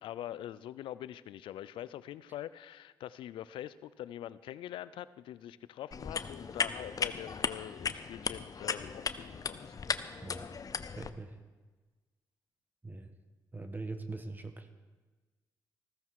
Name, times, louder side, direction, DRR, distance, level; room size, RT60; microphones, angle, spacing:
voice 1, 0.0-9.7, left 12 dB, 85° left, 17 dB, 0.4 m, -44 dB
sound 1, 5.9-11.1, left 5 dB, 45° left, 0.7 m, -36 dB
voice 2, 10.2-10.5 10.9-11.4 12.8-13.1 13.5-14.7, right 3 dB, 20° right, 8 dB, 1.3 m, -42 dB
14.5 x 14.0 x 4.7 m, 1.3 s
supercardioid pair, 60°, 8 cm